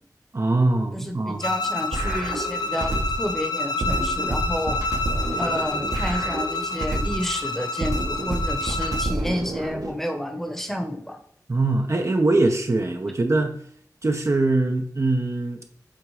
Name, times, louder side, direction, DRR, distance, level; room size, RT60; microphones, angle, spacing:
voice 1, 0.3-1.4 11.5-13.5 14.0-15.6, right 2 dB, 45° right, 4 dB, 0.9 m, -22 dB
voice 2, 0.9-4.8 5.4-11.2, equal, 5° left, 4 dB, 1.2 m, -30 dB
Bowed string instrument, 1.4-9.2, left 3 dB, 90° left, 0.8 m, -29 dB
sound 1, 1.9-3.3 3.8-7.3 7.8-9.9, right 1 dB, 60° right, 1.3 m, -28 dB
7.7 x 3.7 x 5.0 m, 0.63 s
wide cardioid pair, 80°, 7 cm